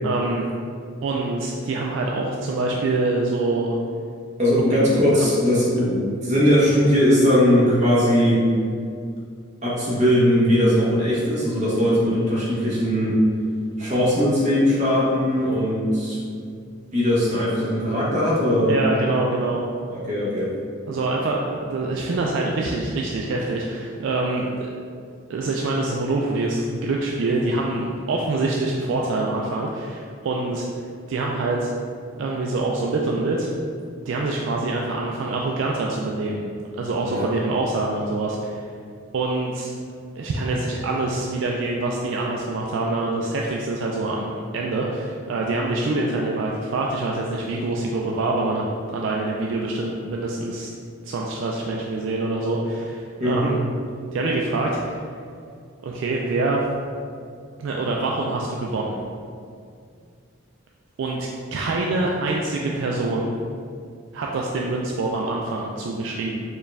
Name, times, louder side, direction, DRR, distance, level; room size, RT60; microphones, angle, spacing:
voice 1, 0.0-0.5 1.0-3.8 4.7-4.8 5.1-5.3 5.8-5.9 18.7-19.6 20.9-24.7 25.3-30.7 31.1-31.7 32.2-33.5 34.0-36.4 36.8-38.7 39.1-39.7 40.2-50.7 51.0-53.6 54.1-55.0 55.8-56.6 57.6-59.0 61.0-63.3 64.1-66.4, right 2 dB, 65° right, -1 dB, 0.3 m, -25 dB
voice 2, 4.4-8.5 9.6-13.2 13.8-16.2 16.9-18.7 19.9-20.5 37.1-37.3 53.2-53.5, equal, 35° right, -7 dB, 0.9 m, -19 dB
4.3 x 2.4 x 3.3 m, 2.3 s
head